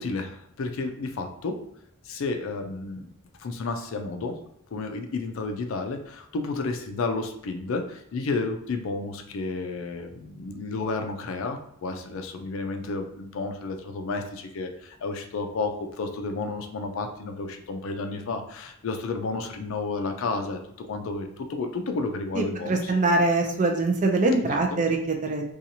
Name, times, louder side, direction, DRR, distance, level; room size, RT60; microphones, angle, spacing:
voice 1, 0.0-1.7 2.0-3.1 3.4-4.4 4.7-22.9 24.4-24.8, left 3 dB, 65° left, 6 dB, 0.4 m, -31 dB
voice 2, 22.3-25.4, right 2 dB, 35° right, 3 dB, 0.4 m, -23 dB
2.7 x 2.3 x 2.7 m, 0.73 s
head